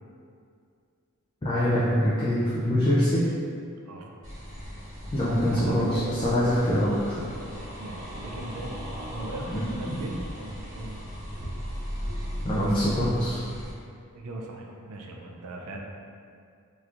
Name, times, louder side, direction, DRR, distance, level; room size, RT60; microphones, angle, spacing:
voice 1, 1.4-3.2 5.1-7.2 9.5-9.7 12.4-13.4, equal, 20° left, -9 dB, 0.4 m, -24 dB
sound 1, 4.2-13.7, equal, 60° right, 1.5 m, -37 dB
voice 2, 5.5-6.4 7.8-8.7 9.1-11.0 14.1-15.8, right 1 dB, 80° right, 1 dB, 0.4 m, -38 dB
3.4 x 3.0 x 2.4 m, 2.3 s
head